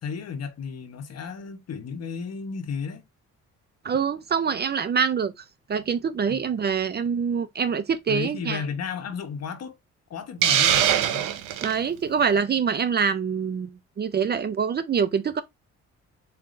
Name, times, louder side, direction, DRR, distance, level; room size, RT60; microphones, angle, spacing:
voice 1, 0.0-3.0 6.3-6.5 8.1-9.8 10.1-11.3, left 6 dB, 55° left, 1.0 m, -33 dB
voice 2, 3.8-5.3 5.7-8.6 11.6-15.4, right 6 dB, 35° right, 0.5 m, -25 dB
Hiss, 10.4-11.8, right 10 dB, 85° right, 0.7 m, -22 dB
4.2 x 3.6 x 2.5 m
cardioid pair, 90°, 30 cm